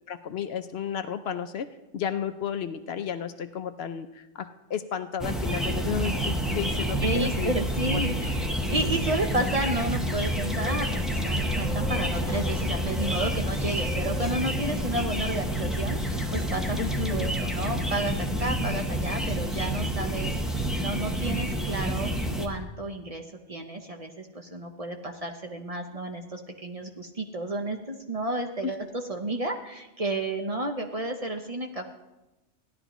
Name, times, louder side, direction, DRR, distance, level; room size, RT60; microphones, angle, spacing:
voice 1, 0.1-1.7 1.9-7.6 7.9-8.0 16.8-17.3 28.6-28.7, left 8 dB, 65° left, 9 dB, 0.8 m, -33 dB
sound 1, 5.2-22.5, equal, ahead, 0.7 m, -28 dB
voice 2, 7.0-8.4 8.7-16.8 17.1-20.3 20.8-22.1 22.4-23.2 23.5-31.9, right 1 dB, 35° right, 4 dB, 0.7 m, -31 dB
16.5 x 11.0 x 3.0 m, 1.0 s
omnidirectional pair, 1.2 m